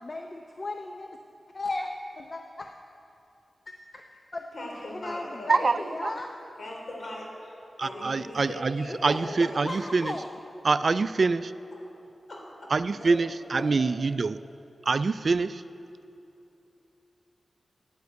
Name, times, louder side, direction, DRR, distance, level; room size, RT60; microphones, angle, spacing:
voice 1, 0.0-1.2 1.5-2.7 3.7-4.0 4.3-6.3 8.9-10.2, left 2 dB, 40° left, 4 dB, 0.7 m, -36 dB
voice 2, 4.5-5.8 6.6-7.5 7.8-9.6 12.3-13.2 13.5-13.7, left 1 dB, 65° left, -2 dB, 3.5 m, -40 dB
voice 3, 5.5-6.1 7.8-10.2 10.6-11.5 12.7-14.4 14.9-15.6, right 4 dB, 60° right, 15 dB, 0.3 m, -25 dB
9.4 x 9.4 x 8.1 m, 2.8 s
cardioid pair, 50°, 0 cm